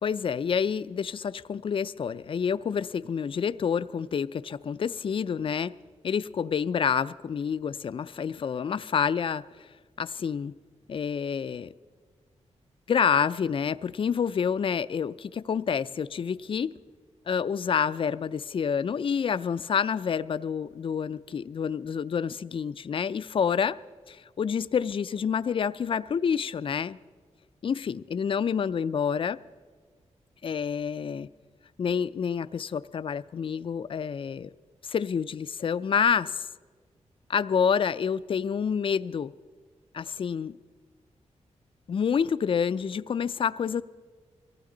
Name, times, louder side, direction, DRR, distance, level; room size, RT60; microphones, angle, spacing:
voice 1, 0.0-5.7 6.0-9.7 10.0-10.5 10.9-11.7 12.9-16.7 17.3-23.8 24.1-27.0 27.6-29.4 30.4-31.3 31.8-34.5 34.8-36.5 37.3-39.3 39.9-40.6 41.9-43.8, left 7 dB, 45° left, 0.4 m, -28 dB
23.5 x 15.5 x 3.9 m
wide cardioid pair, 100°, 12 cm